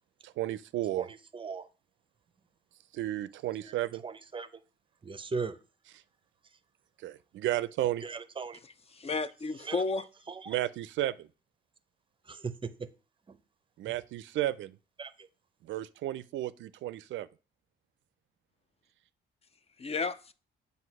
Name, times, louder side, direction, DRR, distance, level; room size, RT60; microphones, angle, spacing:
voice 1, 0.2-1.1 2.9-4.0 7.0-8.0 10.5-11.3 13.8-14.8 15.6-17.3, right 14 dB, 75° right, 0.4 m, -33 dB
voice 2, 1.0-1.7 3.6-4.5 5.0-5.6 8.0-8.6 9.5-9.9 10.3-10.4 12.3-12.9 13.3-13.4 13.9-14.0 15.0-15.1, right 5 dB, 25° right, 0.6 m, -38 dB
voice 3, 8.6-10.1 19.8-20.3, left 4 dB, 30° left, 0.5 m, -33 dB
7.8 x 2.7 x 5.8 m
cardioid pair, 90°, 20 cm